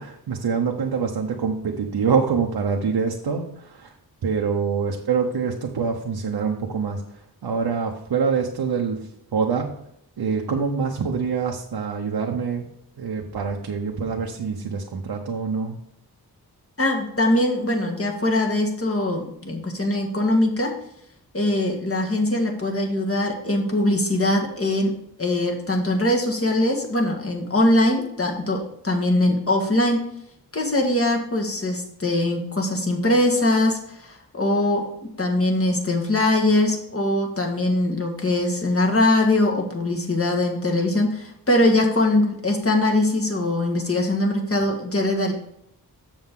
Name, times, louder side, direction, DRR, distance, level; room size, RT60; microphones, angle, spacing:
voice 1, 0.0-3.9 4.2-9.7 10.2-12.7 13.0-15.8, right 5 dB, 90° right, 1 dB, 0.9 m, -25 dB
voice 2, 16.8-20.8 21.3-24.9 25.2-30.0 30.5-34.9 35.2-45.3, left 1 dB, 35° left, 1 dB, 1.7 m, -22 dB
7.4 x 7.0 x 3.7 m, 0.74 s
wide cardioid pair, 65°, 38 cm